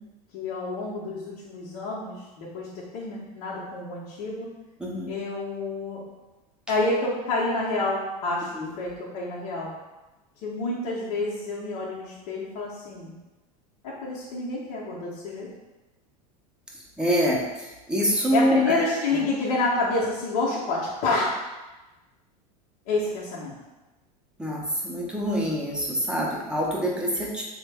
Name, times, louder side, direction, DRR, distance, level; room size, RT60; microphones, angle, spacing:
voice 1, 0.3-2.7 2.9-4.5 5.1-6.0 6.7-8.5 8.8-9.7 10.4-13.1 13.8-15.5 18.3-21.3 22.9-23.5, left 2 dB, 70° left, -6 dB, 0.8 m, -28 dB
voice 2, 4.8-5.1 8.6-8.7 17.0-18.9 24.4-27.4, equal, 5° right, -4 dB, 0.6 m, -25 dB
3.3 x 2.2 x 3.3 m, 1.1 s
supercardioid pair, 125°, 20 cm